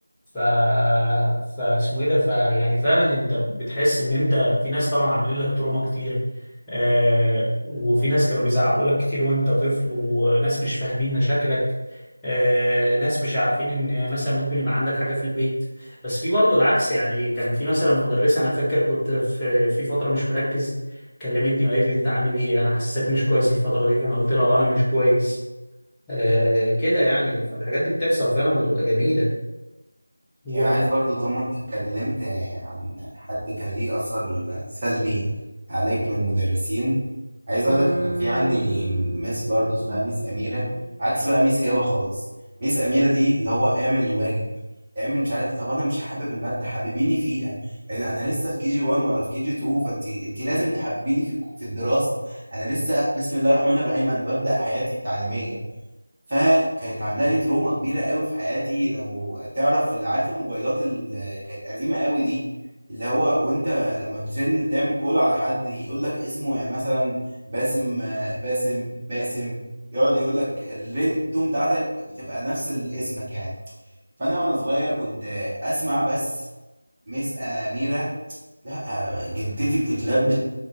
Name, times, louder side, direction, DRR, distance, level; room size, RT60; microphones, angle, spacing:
voice 1, 0.3-6.2 6.7-11.7 12.2-20.7 21.2-25.4 26.1-29.3 30.4-30.7, equal, 5° left, -14 dB, 1.0 m, -22 dB
voice 2, 30.5-35.3 35.7-37.0 37.5-42.2 42.6-44.4 44.9-55.6 56.3-62.4 62.9-69.6 69.9-73.5 74.2-76.4 77.1-78.2 78.6-80.3, equal, 25° right, -11 dB, 1.1 m, -24 dB
sound 1, 37.6-42.0, right 1 dB, 40° right, 0.5 m, -33 dB
3.7 x 2.5 x 3.2 m, 1.0 s
figure-of-eight pair, 170°, 0 cm